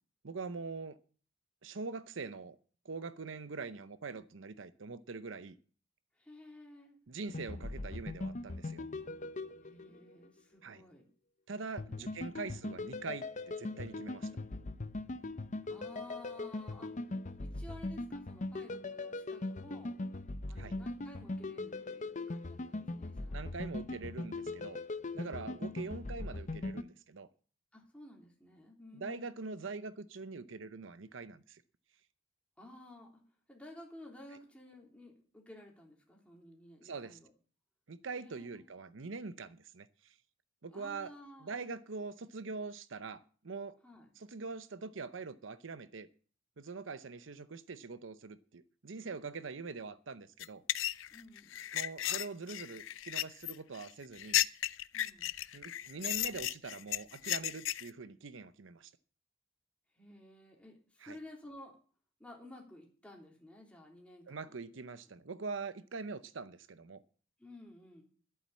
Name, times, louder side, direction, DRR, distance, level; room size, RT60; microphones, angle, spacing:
voice 1, 0.2-1.0 1.6-2.6 2.8-5.5 7.1-8.8 10.6-10.8 11.5-14.3 20.6-20.7 23.3-24.8 25.1-27.3 28.9-31.6 36.8-37.2 37.9-40.2 40.6-41.1 41.4-43.7 44.2-46.1 46.6-50.6 51.7-54.4 55.5-58.9 61.0-61.2 64.3-67.0, right 4 dB, 80° right, 0.7 m, -43 dB
voice 2, 6.2-7.0 9.6-11.0 11.9-12.5 15.7-16.9 17.4-19.9 20.5-23.4 25.2-25.7 27.7-29.3 32.6-33.1 33.5-37.3 38.2-38.7 40.7-41.7 43.8-44.1 51.1-51.5 54.9-55.3 59.9-61.8 62.2-64.6 67.4-68.0, left 1 dB, 5° left, 3.3 m, -54 dB
sound 1, 7.3-10.3 11.8-26.8, left 2 dB, 40° left, 0.7 m, -40 dB
sound 2, 50.4-57.9, left 13 dB, 90° left, 0.5 m, -34 dB
11.5 x 8.6 x 7.3 m
head